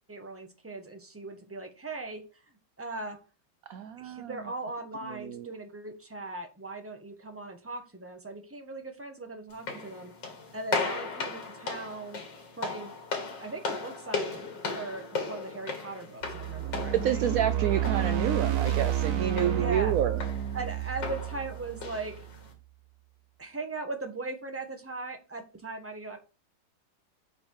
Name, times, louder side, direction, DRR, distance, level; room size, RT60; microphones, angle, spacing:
voice 1, 0.1-2.2 2.8-3.2 4.0-10.1 10.5-12.2 12.6-12.9 13.4-14.4 14.7-17.2 19.5-19.9 20.5-22.2 23.4-26.2, right 2 dB, 10° right, 1.2 m, -39 dB
voice 2, 3.7-4.3 5.1-5.5 16.9-20.2, right 9 dB, 70° right, 0.9 m, -29 dB
sound 1, 9.5-22.5, left 4 dB, 90° left, 2.7 m, -37 dB
sound 2, 16.2-22.4, right 11 dB, 55° right, 1.4 m, -30 dB
8.7 x 5.2 x 4.7 m
omnidirectional pair, 1.9 m